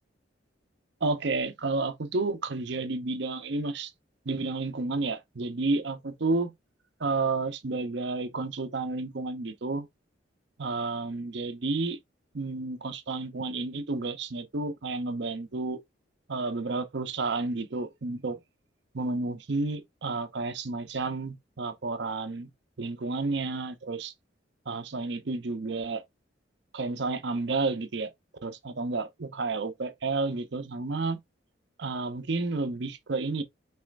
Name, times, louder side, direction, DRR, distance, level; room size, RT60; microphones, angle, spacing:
voice 1, 1.0-3.9 4.3-6.5 7.0-9.9 10.6-12.0 12.3-15.8 16.3-18.4 18.9-22.5 22.8-24.1 24.7-26.0 26.7-28.1 28.4-31.2 31.8-33.4, right 3 dB, 65° right, 0.7 m, -31 dB
5.5 x 3.1 x 2.5 m
head